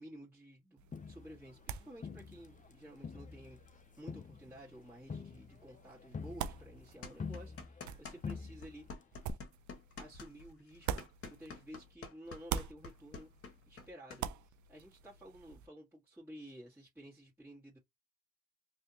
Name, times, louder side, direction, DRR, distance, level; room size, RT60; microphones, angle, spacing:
voice 1, 0.0-9.4 10.0-11.0 11.3-13.3 13.7-17.8, equal, 5° right, 1.8 m, -53 dB
sound 1, 0.8-12.0 12.2-15.7, right 9 dB, 75° right, 0.6 m, -46 dB
Crowd, 0.9-2.7 3.0-8.0 8.2-8.9 9.3-9.4, left 5 dB, 25° left, 0.5 m, -46 dB
sound 2, 7.0-8.4 8.6-14.2, left 4 dB, 50° left, 1.3 m, -48 dB
3.4 x 2.8 x 2.8 m
cardioid pair, 90°, 30 cm